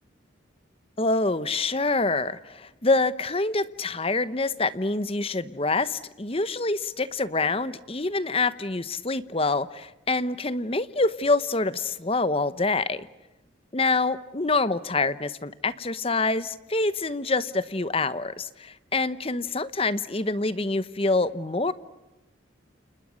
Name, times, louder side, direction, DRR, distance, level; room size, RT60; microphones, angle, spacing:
voice 1, 1.0-13.1 13.7-21.7, left 3 dB, 30° left, 15 dB, 1.0 m, -26 dB
30.0 x 29.0 x 6.5 m, 1.0 s
head